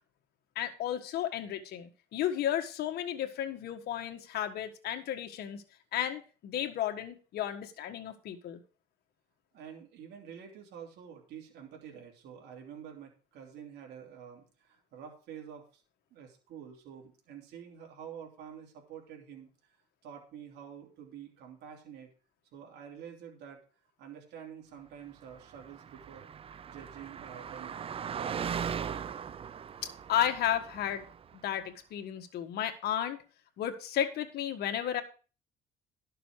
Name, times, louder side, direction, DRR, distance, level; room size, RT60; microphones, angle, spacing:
voice 1, 0.5-5.6 5.9-8.6 30.1-31.0 31.4-33.2 33.6-35.0, left 10 dB, 70° left, 6 dB, 1.6 m, -33 dB
voice 2, 9.5-15.8 16.1-19.8 20.0-22.1 22.5-23.6 24.0-29.2, right 8 dB, 80° right, 1 dB, 3.1 m, -48 dB
Car passing by, 25.4-31.3, right 7 dB, 35° right, 0.5 m, -39 dB
12.0 x 6.7 x 4.7 m, 0.36 s
cardioid pair, 110°, 17 cm